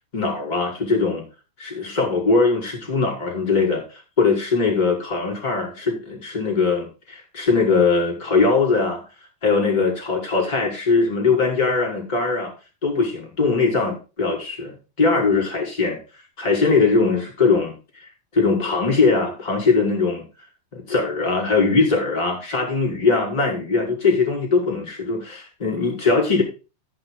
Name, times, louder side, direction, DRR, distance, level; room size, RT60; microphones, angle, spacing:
voice 1, 0.1-1.2 1.6-9.0 9.4-12.5 12.8-16.0 16.4-18.1 18.3-20.2 20.7-26.4, left 4 dB, 10° left, -1 dB, 4.7 m, -21 dB
15.0 x 7.7 x 4.1 m, 0.31 s
omnidirectional pair, 5.7 m